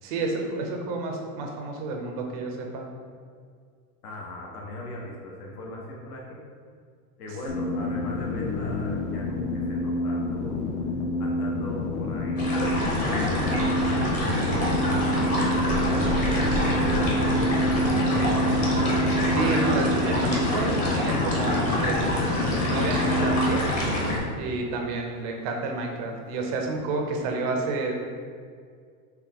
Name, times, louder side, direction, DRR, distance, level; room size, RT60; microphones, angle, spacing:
voice 1, 0.0-2.8 7.9-8.1 19.2-23.7 24.4-27.9, right 3 dB, 30° right, 2 dB, 0.4 m, -30 dB
voice 2, 4.0-6.4 7.2-10.7 11.2-15.2 15.6-18.9, left 1 dB, 75° left, -2 dB, 1.1 m, -39 dB
sound 1, 7.5-23.6, left 1 dB, 55° left, 0.7 m, -28 dB
sound 2, 12.4-24.2, left 1 dB, 15° left, 0.6 m, -26 dB
4.7 x 3.2 x 3.5 m, 2.1 s
supercardioid pair, 155°, 45 cm